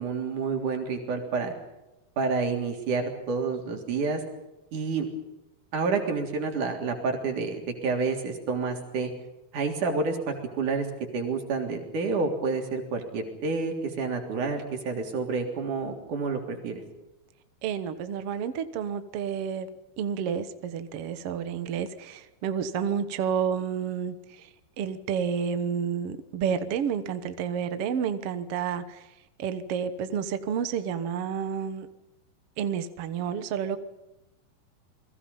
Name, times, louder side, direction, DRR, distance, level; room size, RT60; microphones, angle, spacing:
voice 1, 0.0-1.5 2.2-4.2 4.7-5.1 5.7-9.1 9.5-10.9 11.1-16.8, right 4 dB, 50° right, 3 dB, 4.7 m, -29 dB
voice 2, 17.6-19.7 20.0-24.5 24.8-29.1 29.4-31.9 32.6-33.8, right 7 dB, 75° right, 10 dB, 1.3 m, -30 dB
29.0 x 22.0 x 5.5 m, 0.98 s
omnidirectional pair, 4.6 m